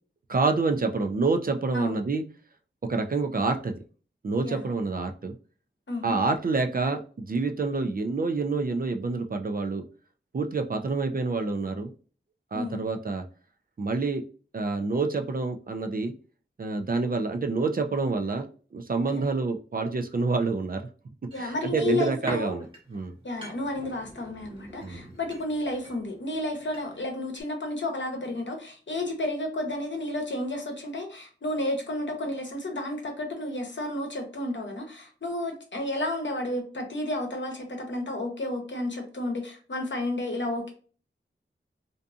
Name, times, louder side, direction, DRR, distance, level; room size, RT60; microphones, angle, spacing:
voice 1, 0.3-2.2 2.9-3.7 4.2-5.3 6.0-9.8 10.3-11.9 12.5-13.2 13.8-14.2 14.5-16.1 16.6-20.8 21.4-22.7 22.9-23.2 24.8-25.1, right 3 dB, 45° right, 5 dB, 0.4 m, -27 dB
voice 2, 5.9-6.2 12.5-12.8 19.1-19.2 21.3-22.6 23.2-40.7, left 2 dB, 65° left, 3 dB, 0.8 m, -31 dB
sound 1, 21.3-27.1 27.4-27.5, equal, 25° right, 0.9 m, -44 dB
2.6 x 2.5 x 2.4 m, 0.39 s
wide cardioid pair, 50°, 21 cm